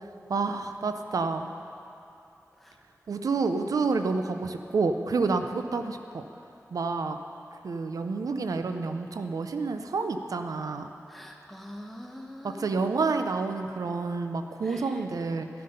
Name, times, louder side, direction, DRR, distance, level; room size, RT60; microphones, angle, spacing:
voice 1, 0.3-1.5 3.1-6.2 6.7-7.2 7.6-10.9 12.4-15.5, right 4 dB, 85° right, 7 dB, 0.6 m, -29 dB
voice 2, 11.1-12.8 14.6-15.0, equal, ahead, 1 dB, 1.3 m, -43 dB
12.5 x 7.7 x 5.4 m, 2.7 s
wide cardioid pair, 55°, 6 cm